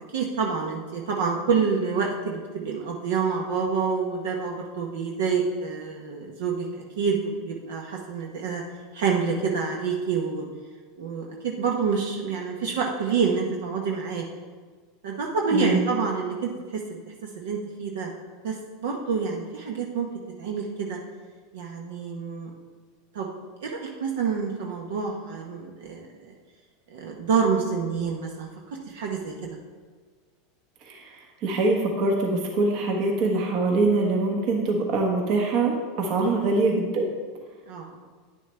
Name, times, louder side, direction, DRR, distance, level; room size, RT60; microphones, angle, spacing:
voice 1, 0.1-8.6 8.9-10.4 11.0-14.2 15.0-18.1 18.4-20.1 20.4-21.0 21.5-22.5 23.1-23.3 23.6-26.3 26.9-29.3 36.2-36.3 37.7-38.0, right 5 dB, 75° right, 0 dB, 1.0 m, -27 dB
voice 2, 15.5-15.8 30.8-37.0, right 3 dB, 55° right, 1 dB, 1.4 m, -24 dB
9.7 x 6.3 x 3.3 m, 1.5 s
hypercardioid pair, 105°, 0 cm